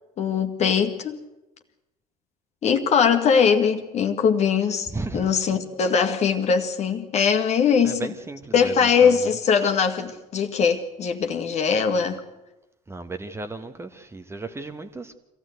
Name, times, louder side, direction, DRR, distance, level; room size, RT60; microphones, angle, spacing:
voice 1, 0.2-1.2 2.6-8.1 8.5-12.2, left 6 dB, 35° left, 6 dB, 2.0 m, -21 dB
voice 2, 4.9-5.2 7.8-9.3 12.9-15.2, right 3 dB, 15° right, 8 dB, 1.6 m, -35 dB
25.5 x 16.0 x 8.1 m, 1.0 s
figure-of-eight pair, 65°, 19 cm